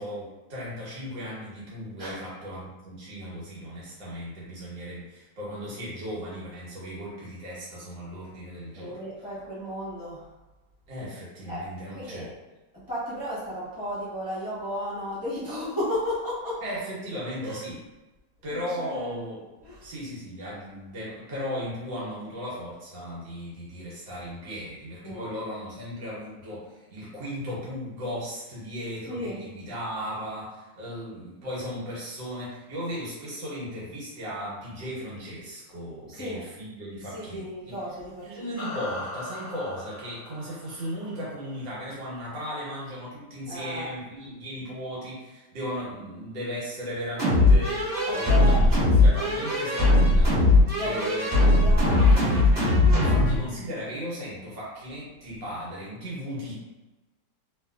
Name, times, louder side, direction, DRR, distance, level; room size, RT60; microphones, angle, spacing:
voice 1, 0.0-9.0 10.9-12.3 16.6-17.8 18.4-19.4 19.8-37.8 38.2-50.4 50.8-51.5 52.9-56.5, equal, 85° right, -7 dB, 1.8 m, -36 dB
voice 2, 8.7-10.3 11.5-11.7 11.9-12.3 12.9-16.6 17.4-17.6 18.5-19.2 19.6-19.9 25.0-25.3 29.1-29.4 36.1-36.4 37.1-38.6 43.5-43.9 48.1-48.6 50.7-52.4, left 1 dB, 15° left, -12 dB, 0.8 m, -34 dB
sound 1, 38.6-41.3, left 2 dB, 65° left, 0.9 m, -39 dB
sound 2, 47.2-53.4, left 2 dB, 35° right, 1.7 m, -19 dB
3.4 x 2.8 x 2.3 m, 1.1 s
omnidirectional pair, 2.0 m